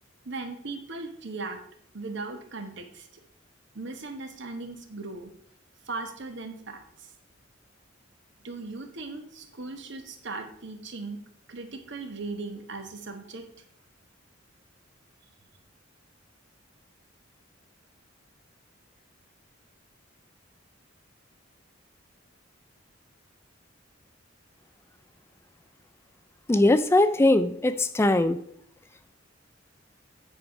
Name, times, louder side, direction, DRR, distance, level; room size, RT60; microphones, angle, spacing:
voice 1, 0.2-1.6 1.9-3.1 3.7-5.3 5.8-7.1 8.4-11.2 11.5-13.4, right 3 dB, 65° right, 6 dB, 1.3 m, -38 dB
voice 2, 26.5-28.4, left 2 dB, 15° left, 12 dB, 0.3 m, -21 dB
9.7 x 4.8 x 5.3 m, 0.66 s
head